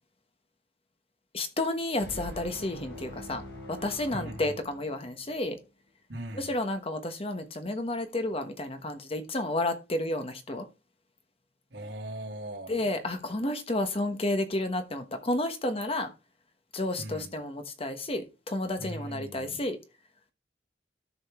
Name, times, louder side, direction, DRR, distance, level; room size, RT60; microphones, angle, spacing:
voice 1, 1.3-3.4 3.7-5.6 6.3-10.7 12.7-16.1 16.7-19.8, left 1 dB, 35° left, 1.2 m, -31 dB
sound 1, 2.0-5.5, left 1 dB, 80° left, 5.1 m, -44 dB
voice 2, 4.1-4.6 6.1-6.5 11.7-12.9 17.0-17.3 18.8-19.6, right 1 dB, 80° right, 2.7 m, -40 dB
13.0 x 5.2 x 3.6 m
head